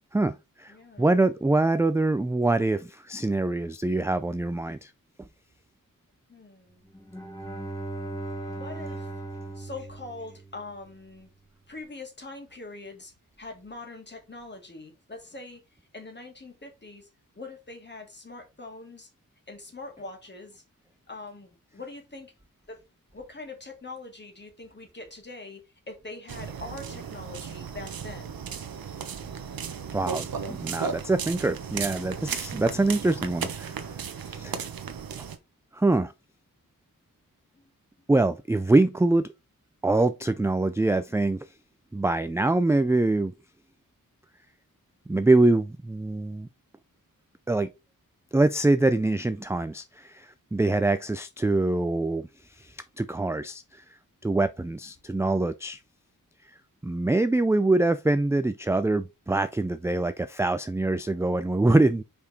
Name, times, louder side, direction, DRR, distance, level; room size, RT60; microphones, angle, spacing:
voice 1, 0.1-4.9 5.2-5.3 29.9-33.7 34.3-34.6 35.7-36.1 38.1-39.3 39.8-41.5 41.9-43.3 45.1-46.5 47.5-47.7 48.3-52.3 52.6-53.8 54.2-55.8 56.8-62.0, right 2 dB, 10° right, 0.3 m, -24 dB
voice 2, 0.7-1.1 6.3-6.8 8.5-9.1 9.5-11.3 11.7-15.6 15.9-17.1 17.3-19.1 19.5-20.6 21.1-22.3 22.7-22.8 23.1-25.6 25.9-28.4 37.5-37.6, left 3 dB, 30° left, 2.2 m, -43 dB
Bowed string instrument, 6.9-11.0, right 2 dB, 10° left, 2.1 m, -38 dB
sound 1, 26.3-35.4, right 6 dB, 85° right, 1.0 m, -35 dB
5.3 x 4.9 x 4.1 m
wide cardioid pair, 130°, 34 cm